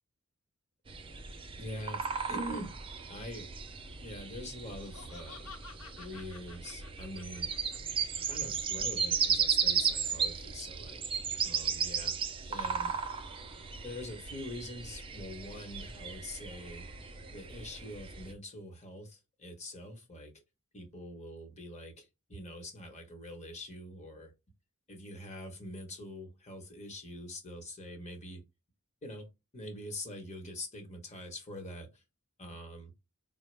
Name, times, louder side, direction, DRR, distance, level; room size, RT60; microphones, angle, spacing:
sound 1, 0.9-18.3, right 6 dB, 25° right, 0.4 m, -35 dB
voice 1, 1.6-2.0 2.3-2.7 3.1-3.5 4.0-5.5 6.0-7.5 8.3-11.0 11.4-12.2 12.5-12.9 13.8-17.0 17.3-20.3 20.7-24.3 24.9-28.4 29.0-29.3 29.5-31.9 32.4-32.9, left 1 dB, 30° left, 1.1 m, -44 dB
Laughter, 4.5-7.8, left 4 dB, 90° left, 0.9 m, -51 dB
4.5 x 2.1 x 3.2 m
head